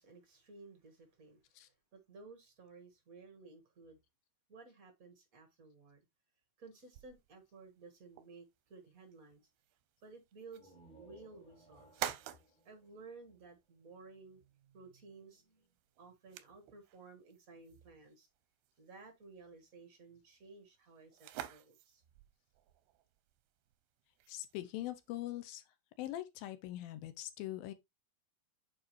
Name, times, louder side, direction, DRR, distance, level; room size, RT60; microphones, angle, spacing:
voice 1, 0.0-4.0 4.5-6.0 6.6-9.5 10.0-12.1 12.6-15.7 16.0-18.3 18.8-22.0, right 4 dB, 65° right, 0.8 m, -56 dB
sound 1, 6.9-25.4, right 12 dB, 90° right, 2.5 m, -51 dB
sound 2, 10.4-14.1, right 1 dB, 15° left, 1.8 m, -62 dB
voice 2, 24.3-25.6 26.0-27.7, left 14 dB, 80° left, 2.4 m, -42 dB
8.6 x 4.7 x 3.1 m
omnidirectional pair, 4.3 m